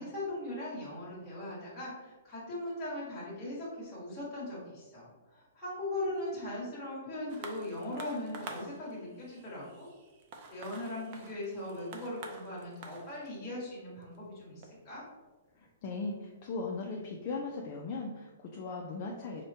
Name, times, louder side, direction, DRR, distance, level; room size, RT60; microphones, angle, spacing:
voice 1, 0.0-9.9 10.5-15.0, left 1 dB, 15° left, -8 dB, 1.3 m, -39 dB
sound 1, 7.3-16.1 16.9-17.0, right 4 dB, 35° right, 0.4 m, -49 dB
voice 2, 15.5-19.4, left 3 dB, 30° left, 0 dB, 0.4 m, -38 dB
4.9 x 2.1 x 2.7 m, 1.2 s
hypercardioid pair, 170°, 0 cm